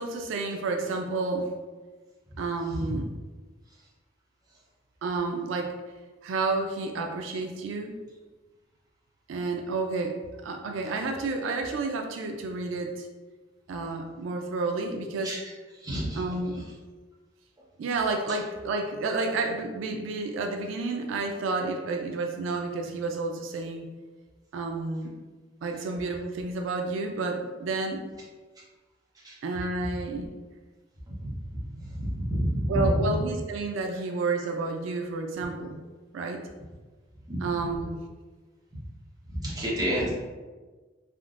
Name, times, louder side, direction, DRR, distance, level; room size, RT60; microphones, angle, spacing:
voice 1, 0.0-1.5 2.4-3.1 5.0-5.7 6.2-8.0 9.3-10.1 10.4-13.1 13.7-15.4 16.1-16.7 17.8-23.9 24.5-25.1 25.6-28.1 29.4-30.3 32.7-35.8 36.1-36.5 37.4-38.0, right 3 dB, 90° right, 4 dB, 0.3 m, -30 dB
voice 2, 15.8-16.2 29.2-29.3 31.2-31.3 31.9-32.8 37.3-37.4 39.3-40.1, equal, 20° right, -7 dB, 0.8 m, -29 dB
3.5 x 2.5 x 2.4 m, 1.3 s
head